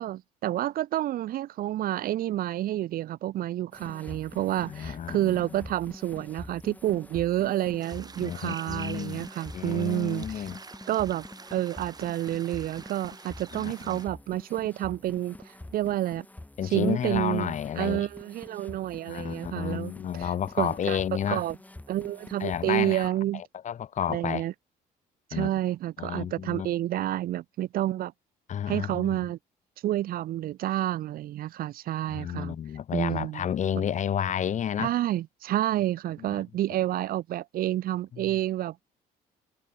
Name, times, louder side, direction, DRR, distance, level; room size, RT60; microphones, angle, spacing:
voice 1, 0.0-10.5 10.9-11.2 11.5-15.4 15.7-16.3 16.7-19.9 20.2-20.3 20.6-21.0 21.3-21.6 21.9-23.4 24.1-24.5 25.3-28.1 28.7-29.4 29.8-32.5 32.9-33.4 33.7-33.9 34.8-38.8, right 13 dB, 60° right, 0.6 m, -29 dB
sound 1, 3.7-23.1, left 1 dB, 10° left, 7.8 m, -46 dB
voice 2, 4.7-5.7 8.2-9.2 9.5-10.6 13.5-14.0 16.6-18.1 19.1-21.4 22.4-24.5 25.3-25.5 26.0-26.7 28.5-29.2 32.1-34.9 36.2-36.4 38.1-38.3, left 9 dB, 45° left, 1.2 m, -31 dB
sound 2, 7.8-14.1, right 4 dB, 25° right, 3.0 m, -46 dB
cardioid pair, 110°, 17 cm